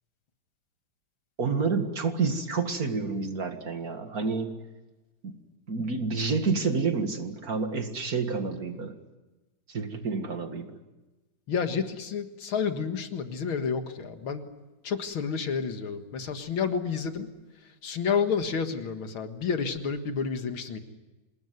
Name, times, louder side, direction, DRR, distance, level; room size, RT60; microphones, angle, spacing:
voice 1, 1.4-4.6 5.2-5.4 5.7-9.0 9.7-10.8, right 4 dB, 45° right, 6 dB, 2.3 m, -29 dB
voice 2, 11.5-14.4 14.8-17.3 17.8-20.8, left 6 dB, 80° left, 7 dB, 2.5 m, -30 dB
26.5 x 20.5 x 9.4 m, 1.1 s
omnidirectional pair, 2.2 m